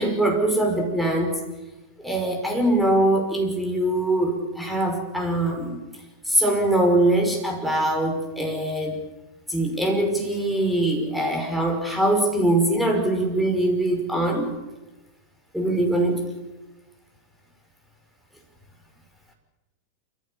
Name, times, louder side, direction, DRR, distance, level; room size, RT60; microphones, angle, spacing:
voice 1, 0.0-1.4 2.0-5.8 6.3-9.0 9.5-14.5 15.5-16.2, right 1 dB, ahead, 1 dB, 5.6 m, -22 dB
28.0 x 15.0 x 8.6 m, 1.1 s
figure-of-eight pair, 90°, 0 cm